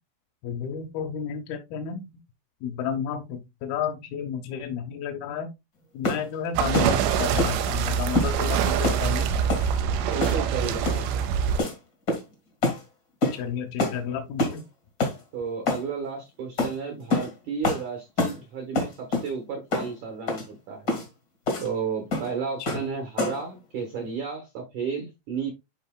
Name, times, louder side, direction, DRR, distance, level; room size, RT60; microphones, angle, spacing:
voice 1, 0.4-2.0 2.6-5.5 5.9-9.3 13.3-14.6 22.7-22.8, left 8 dB, 75° left, 2.3 m, -32 dB
sound 1, 6.0-6.3 6.7-6.9 7.4-7.6 8.1-8.3 8.8-9.0 9.5-9.7 10.2-10.5 10.8-11.1 11.6-11.8 12.1-12.3 12.6-12.8 13.2-13.4 13.8-14.0 14.4-14.6 15.0-15.2 15.7-15.8 16.6-16.7 17.1-17.3 17.6-17.8 18.2-18.4 18.7-19.3 19.7-19.9 20.3-20.4 20.9-21.0 21.5-21.7 22.1-22.3 22.7-22.9 23.2-23.5, left 2 dB, 50° left, 1.0 m, -26 dB
sound 2, 6.6-11.6, right 8 dB, 90° right, 3.1 m, -25 dB
voice 2, 10.1-11.2 15.3-21.0 21.6-25.5, right 5 dB, 70° right, 1.9 m, -33 dB
11.5 x 3.9 x 2.2 m
omnidirectional pair, 5.0 m